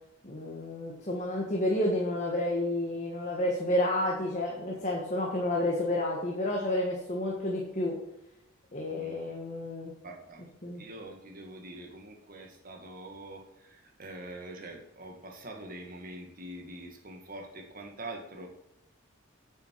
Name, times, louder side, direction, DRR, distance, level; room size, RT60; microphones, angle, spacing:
voice 1, 0.2-7.9 8.7-9.9 10.6-10.8, left 1 dB, 35° left, -2 dB, 1.5 m, -30 dB
voice 2, 10.0-10.4 10.8-18.5, right 1 dB, 40° right, 2 dB, 1.7 m, -44 dB
9.2 x 7.4 x 4.6 m, 0.87 s
head